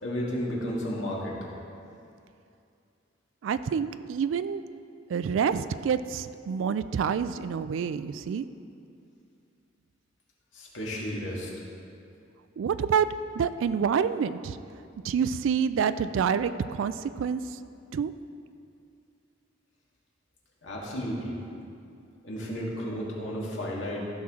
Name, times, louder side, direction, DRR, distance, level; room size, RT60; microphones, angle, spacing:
voice 1, 0.0-1.4 10.5-11.5 20.6-21.4 22.2-24.0, equal, 75° left, -4 dB, 2.0 m, -33 dB
voice 2, 3.4-4.6 5.1-8.5 12.6-14.6 15.0-17.6 17.9-18.1, right 7 dB, 80° right, 12 dB, 0.3 m, -27 dB
15.0 x 5.9 x 3.7 m, 2.5 s
head